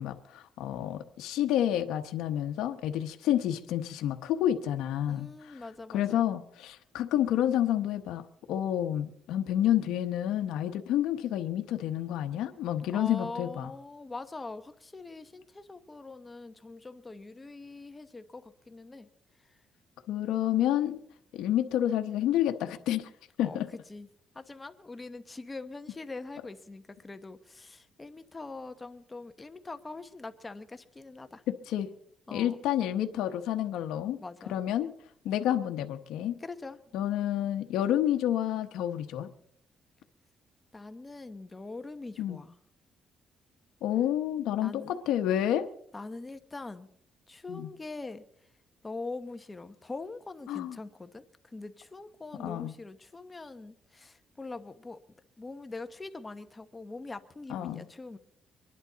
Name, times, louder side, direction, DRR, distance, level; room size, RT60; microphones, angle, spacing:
voice 1, 0.0-5.6 5.9-13.7 20.1-21.0 21.3-23.1 23.4-23.7 31.7-31.9 32.3-34.2 34.5-34.9 35.2-36.4 36.9-39.3 42.2-42.4 43.8-45.6 47.5-47.7 50.5-50.8 52.4-52.7 57.5-57.8, left 11 dB, 90° left, 6 dB, 0.9 m, -29 dB
voice 2, 5.1-6.2 12.9-19.1 19.4-19.6 23.4-24.1 24.3-31.4 32.3-32.6 34.2-34.6 36.4-36.8 40.7-42.6 44.6-45.0 45.9-46.9 47.3-48.2 48.8-55.0 55.4-58.2, left 3 dB, 25° left, 9 dB, 1.0 m, -43 dB
25.0 x 11.0 x 4.0 m, 0.68 s
cardioid pair, 90°, 0 cm